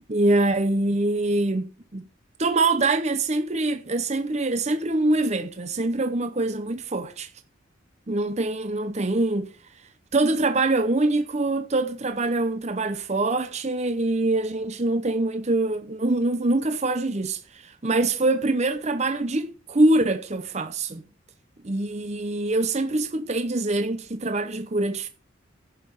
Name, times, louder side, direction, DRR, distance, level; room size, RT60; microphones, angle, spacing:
voice 1, 0.1-2.1 2.4-7.3 8.1-9.5 10.1-21.0 21.6-25.1, right 2 dB, 35° right, 0.8 m, -24 dB
10.5 x 5.8 x 6.4 m
head